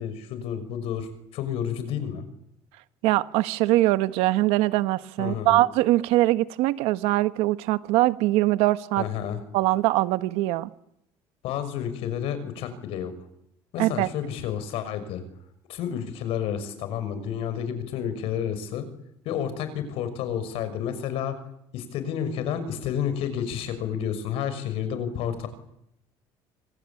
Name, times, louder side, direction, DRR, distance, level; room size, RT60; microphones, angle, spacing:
voice 1, 0.0-2.2 5.2-5.6 9.0-9.4 11.4-13.1 13.7-15.2 15.7-18.9 19.2-21.4 21.7-25.5, left 9 dB, 70° left, 11 dB, 6.1 m, -30 dB
voice 2, 3.0-9.0 9.5-10.7 13.8-14.1, right 17 dB, 90° right, 12 dB, 1.4 m, -22 dB
26.0 x 26.0 x 8.7 m, 0.79 s
cardioid pair, 145°, 10 cm